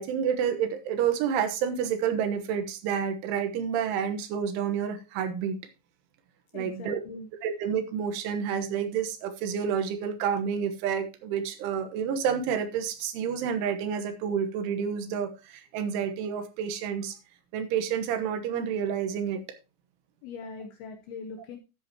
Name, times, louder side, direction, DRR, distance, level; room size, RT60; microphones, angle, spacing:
voice 1, 0.0-5.6 6.5-7.0 7.4-17.2 17.5-19.4, right 7 dB, 85° right, 9 dB, 3.6 m, -29 dB
voice 2, 6.5-7.3 20.2-21.6, left 4 dB, 80° left, 5 dB, 2.3 m, -41 dB
13.0 x 8.4 x 2.9 m, 0.29 s
omnidirectional pair, 5.4 m